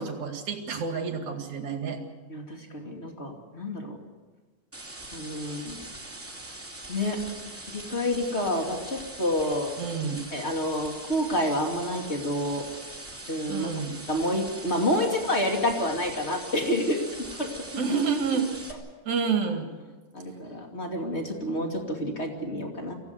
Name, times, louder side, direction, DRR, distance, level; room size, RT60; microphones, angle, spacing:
voice 1, 0.0-2.0 9.8-10.2 13.5-14.0 17.8-18.5 19.0-19.7, right 5 dB, 50° right, 4 dB, 2.7 m, -29 dB
voice 2, 2.3-4.0 5.1-5.8 6.9-7.2 7.7-9.7 10.3-12.6 13.3-13.7 14.1-17.8 20.1-22.9, left 1 dB, 25° left, 2 dB, 1.5 m, -29 dB
sound 1, 4.7-18.7, right 2 dB, 5° right, 1.0 m, -42 dB
24.5 x 16.5 x 8.1 m, 1.3 s
omnidirectional pair, 5.5 m